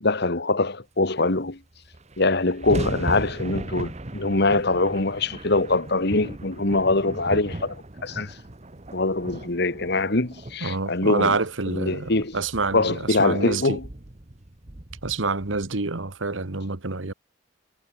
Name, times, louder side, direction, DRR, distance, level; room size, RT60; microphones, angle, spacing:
voice 1, 0.0-1.6 2.2-8.4 8.9-11.4 11.7-12.4 12.7-13.8, left 2 dB, 60° left, 2.0 m, -23 dB
sound 1, 1.5-1.6 1.7-16.1, right 1 dB, 35° right, 1.5 m, -37 dB
voice 2, 10.6-13.8 15.0-17.1, right 3 dB, 90° right, 1.6 m, -27 dB
head